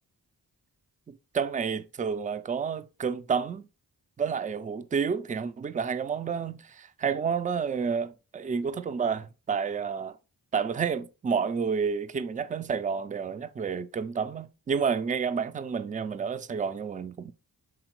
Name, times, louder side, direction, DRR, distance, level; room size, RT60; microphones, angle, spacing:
voice 1, 1.1-3.7 4.2-10.2 10.5-17.3, right 6 dB, 20° right, 0.3 m, -30 dB
4.9 x 3.6 x 2.9 m
cardioid pair, 50°, 39 cm